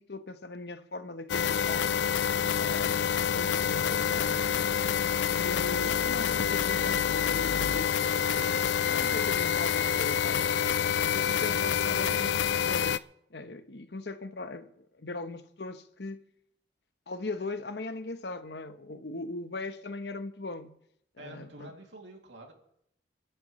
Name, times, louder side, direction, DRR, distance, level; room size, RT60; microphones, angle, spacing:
voice 1, 0.0-2.0 2.5-3.0 3.3-4.8 5.3-10.6 11.0-12.3 12.6-13.0 13.3-16.2 17.1-20.8 21.2-21.7, left 2 dB, 70° left, 1.0 m, -39 dB
sound 1, 1.3-13.0, left 8 dB, 85° left, 0.4 m, -27 dB
voice 2, 11.6-12.3 21.2-22.5, right 1 dB, 90° right, 2.6 m, -48 dB
27.0 x 11.0 x 3.2 m
head